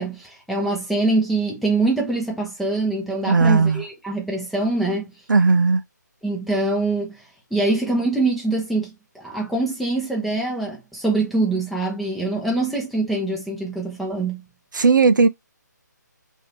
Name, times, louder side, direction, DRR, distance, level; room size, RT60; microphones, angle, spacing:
voice 1, 0.0-5.1 6.2-7.2 7.5-14.4, right 2 dB, ahead, 0.6 m, -24 dB
voice 2, 3.3-3.8 5.3-5.8 14.7-15.3, right 4 dB, 80° right, 0.4 m, -16 dB
2.7 x 2.6 x 3.4 m
figure-of-eight pair, 150°, 10 cm